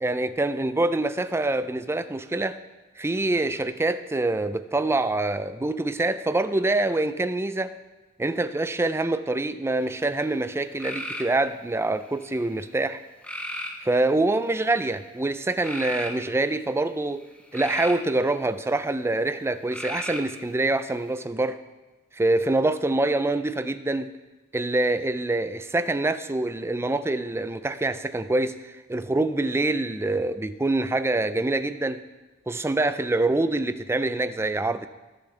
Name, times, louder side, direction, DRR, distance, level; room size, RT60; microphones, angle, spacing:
voice 1, 0.0-2.6 3.0-7.8 8.2-13.0 13.8-17.2 17.5-21.6 22.1-24.1 24.5-32.0 32.5-34.9, right 2 dB, 10° right, 12 dB, 0.4 m, -25 dB
sound 1, 9.8-10.2 10.8-11.3 12.0-12.5 13.2-13.8 14.5-14.9 15.6-16.1 17.2-18.1 19.7-20.4, equal, 5° left, 1.0 m, -34 dB
20.0 x 7.0 x 3.3 m, 1.1 s
head